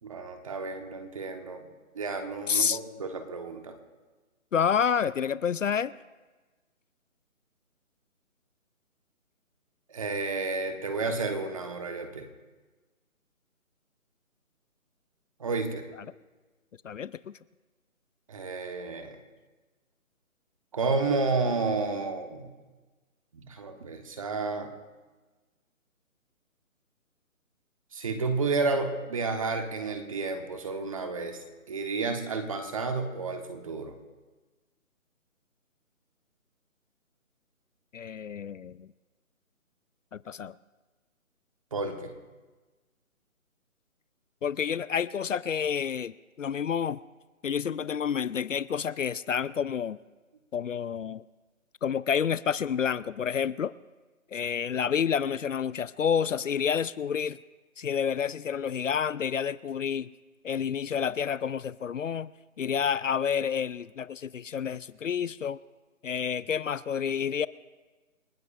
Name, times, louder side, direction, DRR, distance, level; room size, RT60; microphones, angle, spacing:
voice 1, 0.0-3.7 9.9-12.3 15.4-15.8 18.3-19.2 20.7-22.5 23.3-24.7 27.9-33.9 41.7-42.1, right 3 dB, 25° right, 6 dB, 1.2 m, -31 dB
voice 2, 2.5-2.8 4.5-5.9 16.8-17.4 37.9-38.9 40.1-40.5 44.4-47.0 47.4-50.0 50.5-51.2 51.8-53.7 54.3-57.4 57.8-60.1 60.4-62.3 62.6-65.6 66.0-67.5, left 7 dB, 65° left, 18 dB, 0.5 m, -29 dB
28.5 x 17.0 x 2.5 m, 1.3 s
figure-of-eight pair, 165°, 42 cm